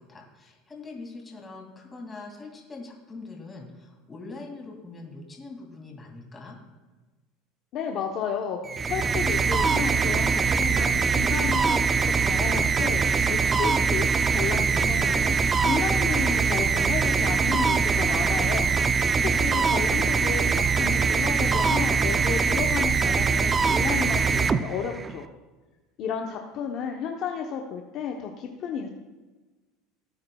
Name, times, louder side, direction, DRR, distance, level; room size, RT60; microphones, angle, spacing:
voice 1, 0.0-6.6 19.1-19.6 19.9-20.1, left 3 dB, 20° left, 0 dB, 2.4 m, -42 dB
voice 2, 7.7-8.6 8.9-11.9 12.2-18.7 19.4-25.2 26.0-28.9, left 7 dB, 50° left, 2 dB, 0.8 m, -32 dB
sound 1, 8.6-25.2, right 5 dB, 20° right, 0.4 m, -23 dB
17.5 x 8.5 x 2.3 m, 1.2 s
supercardioid pair, 140°, 0 cm